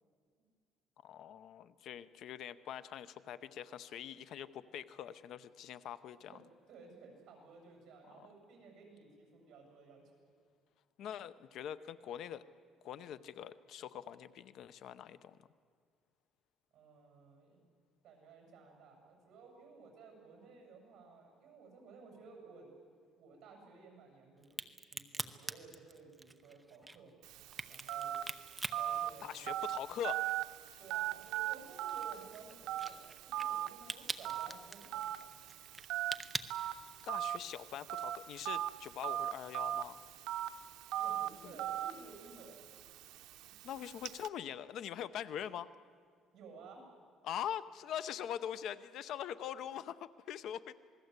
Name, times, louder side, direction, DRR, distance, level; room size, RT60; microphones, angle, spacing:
voice 1, 1.0-6.4 8.2-8.3 11.0-12.5 12.8-15.4 29.2-30.2 37.0-40.0 41.4-41.5 43.6-45.7 47.2-50.7, left 10 dB, 60° left, 15 dB, 0.7 m, -43 dB
voice 2, 6.3-10.0 16.7-17.6 18.0-22.7 23.2-27.1 27.7-28.2 28.8-29.7 30.8-35.3 41.0-42.7 43.5-43.6 46.3-46.9, right 4 dB, 55° right, 2 dB, 7.5 m, -56 dB
Crack, 24.4-29.9 30.3-37.3, right 2 dB, 10° right, 0.8 m, -44 dB
Telephone, 27.2-44.3, right 12 dB, 85° right, 0.7 m, -40 dB
27.5 x 20.0 x 8.2 m, 2.1 s
cardioid pair, 150°, 0 cm